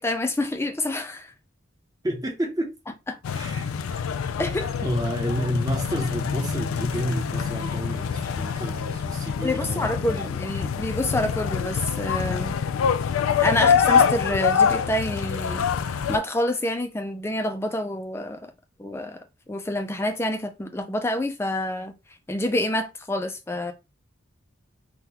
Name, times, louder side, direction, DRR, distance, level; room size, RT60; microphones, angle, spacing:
voice 1, 0.0-1.3 3.1-3.2 4.4-4.7 9.4-12.5 13.4-15.7 16.1-18.5 18.8-21.9 22.3-23.7, left 1 dB, 10° left, 0.3 m, -27 dB
voice 2, 2.0-2.7 3.3-4.1 4.5-10.3 13.6-13.7, equal, 20° right, 0.7 m, -30 dB
sound 1, 3.2-16.2, left 7 dB, 85° left, 0.3 m, -25 dB
3.6 x 2.3 x 2.8 m
head